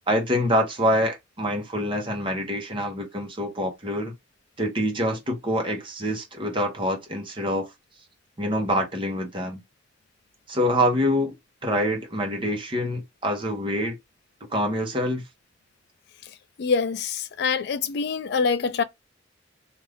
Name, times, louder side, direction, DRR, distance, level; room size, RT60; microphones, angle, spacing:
voice 1, 0.1-4.1 4.6-7.7 8.4-9.6 10.5-11.3 11.6-14.0 14.5-15.2, equal, 25° right, 1.0 m, -25 dB
voice 2, 16.6-18.8, left 5 dB, 60° left, 0.4 m, -25 dB
2.6 x 2.4 x 3.4 m
head